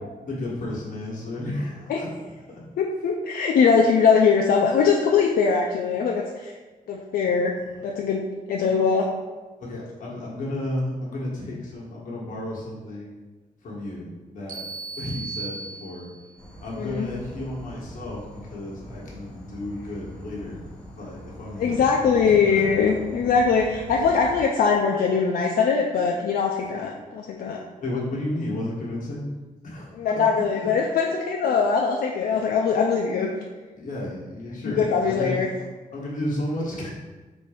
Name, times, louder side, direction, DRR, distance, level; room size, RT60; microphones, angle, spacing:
voice 1, 0.2-2.1 2.5-2.6 9.6-13.2 13.6-14.6 15.0-16.1 16.6-20.6 21.0-21.9 22.2-22.7 27.8-29.3 29.6-30.1 32.3-32.4 33.8-35.3 35.9-36.9, left 1 dB, 60° left, -5 dB, 1.3 m, -32 dB
voice 2, 2.8-6.5 6.9-7.5 7.8-8.2 8.5-9.1 16.8-17.1 21.6-27.6 30.0-33.3 34.6-35.5, left 5 dB, 85° left, 0 dB, 0.4 m, -21 dB
sound 1, 14.5-16.4, right 4 dB, 60° right, 0.7 m, -36 dB
Insect / Frog, 16.4-24.4, left 1 dB, 5° left, 0.8 m, -42 dB
4.1 x 2.6 x 4.8 m, 1.2 s
wide cardioid pair, 175°, 15 cm